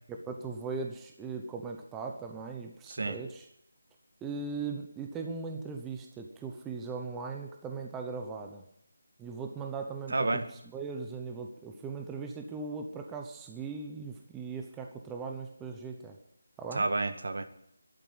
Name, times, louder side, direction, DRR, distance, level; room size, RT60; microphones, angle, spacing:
voice 1, 0.1-3.5 4.2-8.6 9.2-10.4 10.7-16.2 16.6-16.8, right 4 dB, 10° right, 3 dB, 0.9 m, -39 dB
voice 2, 2.9-3.2 10.1-10.5 16.7-17.4, right 2 dB, 65° right, 9 dB, 1.7 m, -30 dB
11.5 x 9.2 x 9.5 m, 0.73 s
figure-of-eight pair, 170°, 0 cm